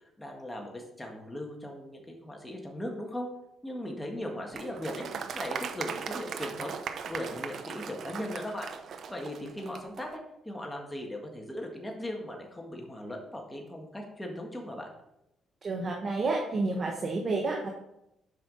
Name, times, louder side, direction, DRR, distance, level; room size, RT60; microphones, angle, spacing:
voice 1, 0.2-3.3 3.6-5.0 5.3-6.8 7.0-8.7 9.1-14.9, left 1 dB, 10° left, 1 dB, 1.6 m, -38 dB
Applause, 4.5-10.1, right 6 dB, 65° right, 0.6 m, -38 dB
voice 2, 15.6-17.7, right 3 dB, 40° right, 0 dB, 1.3 m, -30 dB
7.8 x 5.7 x 4.1 m, 0.85 s
cardioid pair, 90°, 0 cm